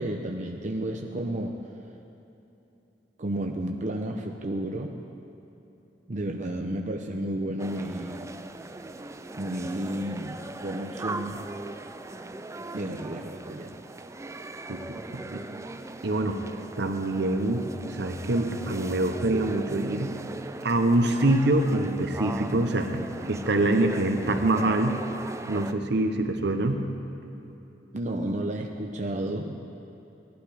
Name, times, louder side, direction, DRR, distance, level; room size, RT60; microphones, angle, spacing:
voice 1, 0.0-1.6 3.2-4.9 6.1-8.3 9.4-11.4 12.7-13.7 27.9-29.6, right 1 dB, 45° right, 2 dB, 0.7 m, -32 dB
sound 1, 7.6-25.7, right 2 dB, 15° right, 0.4 m, -39 dB
voice 2, 15.1-15.4 16.0-16.4 16.8-20.1 20.6-25.0 25.5-26.8, right 2 dB, 65° right, 6 dB, 1.0 m, -25 dB
17.0 x 12.0 x 5.0 m, 2.9 s
head